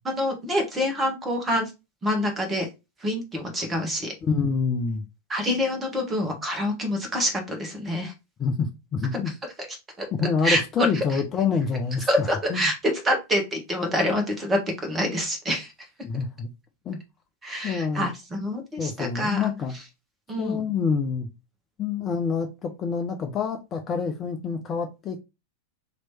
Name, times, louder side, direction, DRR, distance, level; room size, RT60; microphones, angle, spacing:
voice 1, 0.0-1.7 2.0-2.7 3.0-4.1 5.3-8.1 9.1-9.2 10.0-10.1 10.4-11.2 12.1-12.7 13.0-15.7 17.4-19.5 20.3-20.6, equal, 15° right, 1.3 m, -26 dB
voice 2, 4.2-5.0 8.4-9.3 10.1-12.6 16.0-16.5 16.9-17.0 17.6-18.1 18.8-19.7 20.4-21.3 21.8-25.2, left 5 dB, 30° left, 0.6 m, -27 dB
3.1 x 3.0 x 4.3 m
figure-of-eight pair, 90°, 0 cm